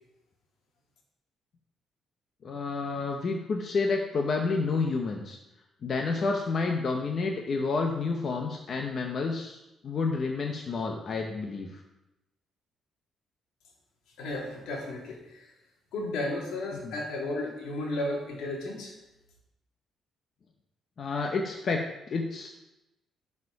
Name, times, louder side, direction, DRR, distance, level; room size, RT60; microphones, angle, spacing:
voice 1, 2.4-5.4 5.8-9.6 9.8-11.8 16.8-16.9 21.0-22.5, left 4 dB, 50° left, 2 dB, 1.0 m, -29 dB
voice 2, 14.2-15.5 15.9-19.0, left 2 dB, 85° left, 0 dB, 2.2 m, -33 dB
11.5 x 4.9 x 4.9 m, 0.95 s
cardioid pair, 90°, 0 cm